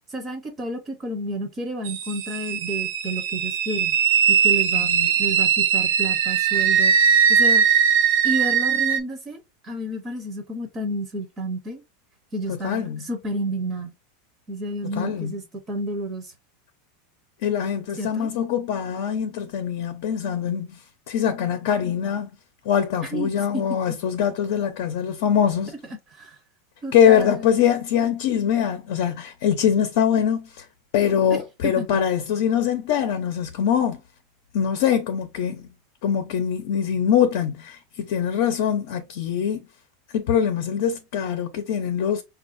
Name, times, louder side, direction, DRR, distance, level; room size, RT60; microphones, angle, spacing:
voice 1, 0.1-4.0 4.3-4.9 5.2-6.9 7.3-7.7 8.2-11.8 12.3-13.9 14.5-16.3 18.0-18.3 23.1-23.6 26.1-26.4 26.8-27.6 31.3-31.4 31.6-32.0, right 1 dB, 20° right, 0.7 m, -30 dB
sound 1, 1.8-9.0, right 7 dB, 60° right, 0.7 m, -20 dB
voice 2, 4.7-5.1 12.5-13.1 14.9-15.3 17.4-20.8 21.1-22.3 22.6-25.7 26.9-30.6 30.9-34.0 34.5-35.7 36.0-39.6 40.1-42.2, left 8 dB, 55° left, 0.6 m, -23 dB
5.4 x 2.4 x 2.5 m
supercardioid pair, 170°, 0 cm